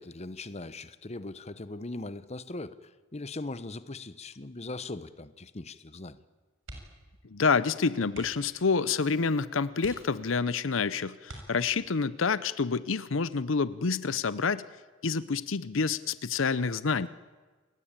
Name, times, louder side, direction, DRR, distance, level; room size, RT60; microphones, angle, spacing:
voice 1, 0.0-6.2, left 2 dB, 30° left, 14 dB, 0.9 m, -40 dB
sound 1, 6.6-7.1 7.4-7.6 8.1-8.6 9.2-9.3 9.8-10.5 11.2-12.0 13.6-13.9 14.2-14.3, right 1 dB, 65° right, 6.8 m, -47 dB
voice 2, 7.3-14.6 15.0-17.1, left 5 dB, 70° left, 16 dB, 0.7 m, -28 dB
28.5 x 20.0 x 9.0 m, 1.4 s
head